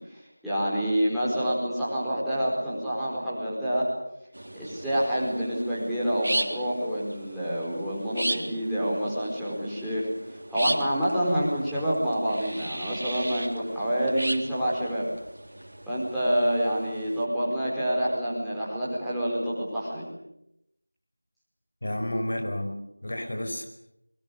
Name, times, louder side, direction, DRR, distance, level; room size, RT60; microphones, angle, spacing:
voice 1, 0.1-3.9 4.5-15.1 15.9-20.1, equal, ahead, -14 dB, 4.8 m, -27 dB
sound 1, 4.3-17.2, right 1 dB, 60° right, 3.7 m, -37 dB
voice 2, 21.8-23.7, left 1 dB, 50° left, 5 dB, 5.1 m, -31 dB
30.0 x 23.0 x 6.9 m, 0.81 s
figure-of-eight pair, 175°, 0 cm